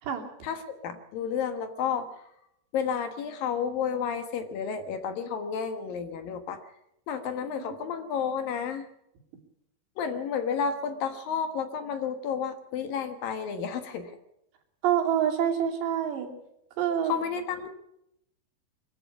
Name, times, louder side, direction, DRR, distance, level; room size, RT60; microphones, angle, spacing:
voice 1, 0.4-2.2 2.7-6.6 7.1-8.9 10.0-14.1 17.1-17.7, left 7 dB, 65° left, 8 dB, 2.9 m, -31 dB
voice 2, 14.8-16.3 16.8-17.1, right 9 dB, 90° right, 0 dB, 5.0 m, -26 dB
23.0 x 14.5 x 8.5 m, 0.82 s
omnidirectional pair, 4.9 m